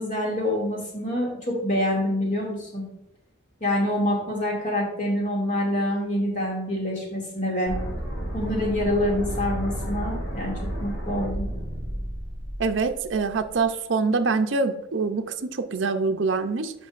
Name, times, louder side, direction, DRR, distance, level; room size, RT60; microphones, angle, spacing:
voice 1, 0.0-2.9 3.6-7.7 8.3-10.5 10.8-11.4, left 1 dB, 40° left, -2 dB, 2.3 m, -26 dB
sound 1, 7.7-13.6, equal, 70° left, 2.5 m, -32 dB
voice 2, 12.6-16.7, right 4 dB, 65° right, 7 dB, 0.5 m, -25 dB
9.3 x 5.3 x 2.5 m, 0.87 s
head